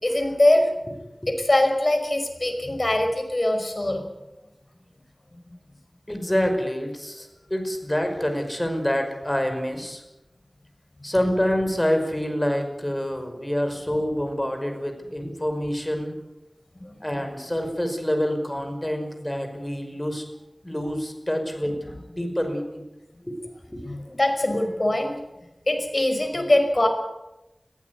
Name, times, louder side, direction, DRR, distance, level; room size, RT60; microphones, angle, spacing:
voice 1, 0.0-0.7 1.3-4.0 16.8-17.0 23.8-25.1 25.7-26.9, left 1 dB, 45° left, 4 dB, 5.4 m, -22 dB
voice 2, 6.1-10.0 11.0-16.2 17.0-20.2 20.6-22.8 23.2-23.4 23.7-23.9, equal, 20° left, 5 dB, 5.5 m, -27 dB
22.0 x 15.0 x 9.7 m, 0.98 s
wide cardioid pair, 50°, 0 cm